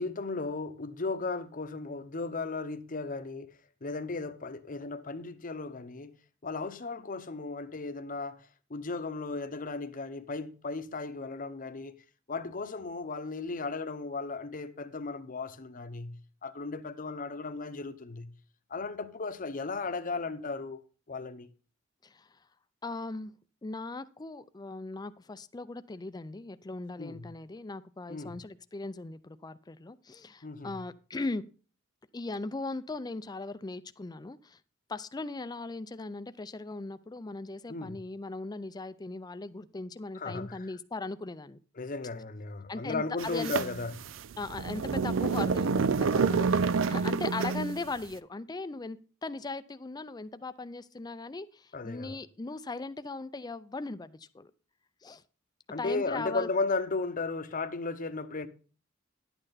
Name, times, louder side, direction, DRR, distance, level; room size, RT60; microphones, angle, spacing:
voice 1, 0.0-3.5 3.8-6.2 6.4-12.0 12.3-18.3 18.7-20.8 21.1-21.5 27.0-27.3 28.1-28.4 30.4-30.8 37.7-38.0 40.1-40.7 41.8-43.9 45.2-45.5 46.1-46.8 51.7-52.2 55.7-58.5, left 3 dB, 45° left, 0.8 m, -36 dB
voice 2, 22.8-23.3 23.6-31.4 32.1-34.6 34.9-41.6 42.7-43.5 44.4-46.2 46.9-54.5 55.0-55.2 55.8-56.5, left 3 dB, 20° left, 0.4 m, -39 dB
sound 1, 43.2-47.9, right 5 dB, 70° right, 0.5 m, -28 dB
11.0 x 8.9 x 4.1 m
head